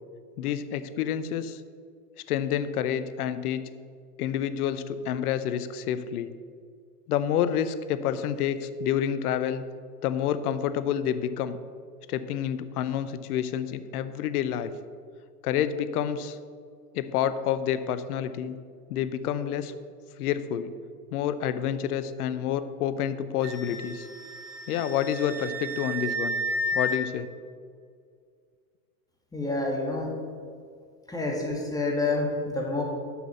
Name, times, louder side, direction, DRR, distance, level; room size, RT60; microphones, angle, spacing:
voice 1, 0.4-1.6 2.3-3.6 4.2-6.3 7.1-9.6 10.0-11.6 12.1-14.7 15.4-16.4 16.9-18.6 18.9-19.7 20.2-20.7 21.1-24.1 24.7-26.4 26.7-27.3, left 9 dB, 70° left, 13 dB, 0.7 m, -28 dB
Wind instrument woodwind instrument, 23.4-27.0, equal, 85° right, 2.4 m, -32 dB
voice 2, 29.3-30.1 31.1-32.8, left 2 dB, 10° left, -1 dB, 2.0 m, -28 dB
7.0 x 6.0 x 6.9 m, 2.1 s
hypercardioid pair, 100°, 47 cm